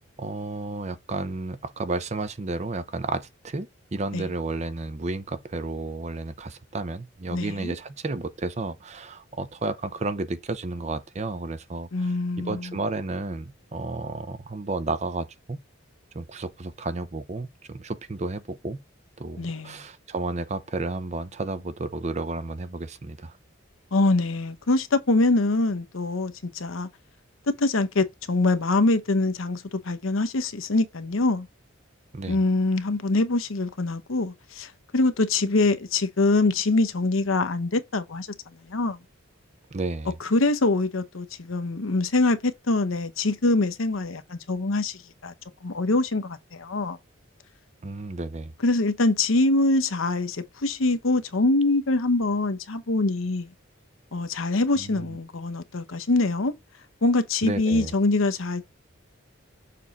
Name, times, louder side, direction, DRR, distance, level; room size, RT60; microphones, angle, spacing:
voice 1, 0.2-15.6 16.1-18.8 19.2-23.4 32.1-32.4 39.7-40.2 47.8-48.5 54.8-55.2 57.4-57.9, right 2 dB, 35° right, 0.6 m, -32 dB
voice 2, 7.3-7.7 11.9-12.8 19.4-19.8 23.9-26.9 27.5-31.5 32.3-38.3 38.7-39.0 40.2-45.3 45.6-47.0 48.6-53.5 54.1-56.5 57.0-58.6, left 2 dB, 80° left, 0.9 m, -24 dB
6.8 x 3.7 x 4.1 m
head